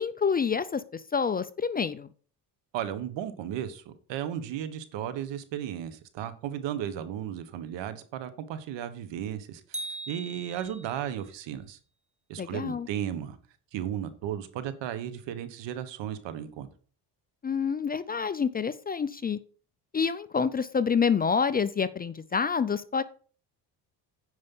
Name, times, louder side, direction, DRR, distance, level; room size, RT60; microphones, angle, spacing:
voice 1, 0.0-2.1 12.4-12.9 17.4-19.4 19.9-23.0, left 6 dB, 25° left, 15 dB, 0.4 m, -27 dB
voice 2, 2.7-11.8 12.3-13.4 13.7-16.7, right 10 dB, 85° right, 12 dB, 1.4 m, -35 dB
sound 1, 9.7-11.1, right 1 dB, 15° right, 1.9 m, -39 dB
9.6 x 5.4 x 5.6 m, 0.42 s
cardioid pair, 125°, 43 cm